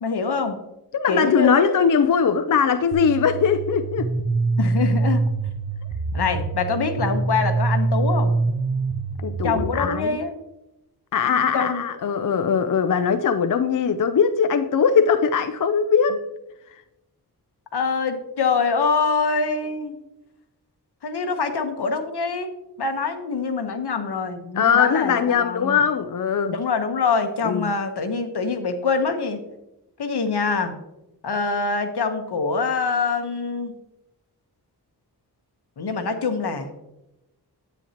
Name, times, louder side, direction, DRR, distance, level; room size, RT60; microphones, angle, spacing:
voice 1, 0.0-0.6 1.1-1.7 4.6-5.3 6.1-8.4 9.4-10.3 11.2-11.8 17.7-19.9 21.0-22.5 22.8-25.8 26.5-29.4 30.0-30.7 31.2-33.7 35.8-36.7, left 4 dB, 75° left, 7 dB, 1.1 m, -24 dB
voice 2, 0.9-4.1 9.2-10.2 11.1-16.2 24.6-26.6 27.4-27.7, left 6 dB, 55° left, 10 dB, 0.5 m, -20 dB
sound 1, 2.9-9.8, right 3 dB, 70° right, 1.1 m, -24 dB
10.0 x 8.7 x 2.9 m, 0.93 s
wide cardioid pair, 105°, 39 cm